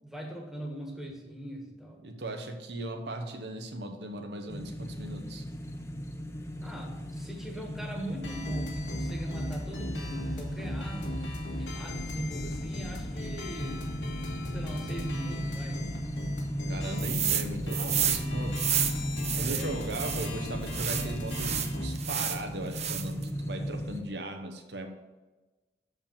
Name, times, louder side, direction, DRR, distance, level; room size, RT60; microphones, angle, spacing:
voice 1, 0.0-2.0 6.6-11.2 11.6-13.9 14.5-15.9 19.2-19.8 20.2-20.3, right 1 dB, 5° right, 1 dB, 1.3 m, -40 dB
voice 2, 2.0-5.4 16.7-18.6 19.4-24.9, right 2 dB, 70° right, 5 dB, 1.0 m, -38 dB
sound 1, 4.5-24.0, equal, 15° left, 0.7 m, -37 dB
sound 2, 8.2-22.0, left 1 dB, 85° left, 1.8 m, -38 dB
sound 3, 17.0-17.5 17.7-20.3 20.7-22.4 22.7-23.2, right 9 dB, 40° right, 0.6 m, -30 dB
7.0 x 5.2 x 7.1 m, 1.2 s
head